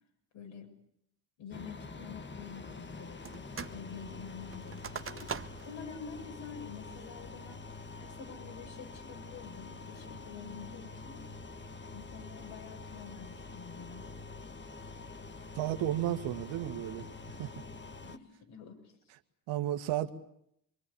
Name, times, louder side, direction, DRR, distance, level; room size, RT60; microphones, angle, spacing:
voice 1, 0.3-0.7 1.4-7.6 7.9-11.2 11.9-14.1 18.0-18.9, left 6 dB, 65° left, 2 dB, 7.7 m, -48 dB
sound 1, 1.5-18.2, left 3 dB, 20° left, 1.7 m, -46 dB
sound 2, 3.2-3.8 4.1-5.8 6.2-6.3 6.8-7.2 7.7-8.2, right 6 dB, 25° right, 1.5 m, -42 dB
voice 2, 15.6-17.5 19.5-20.1, right 12 dB, 65° right, 8 dB, 2.1 m, -33 dB
26.5 x 24.0 x 8.7 m, 0.73 s
hypercardioid pair, 65°, 49 cm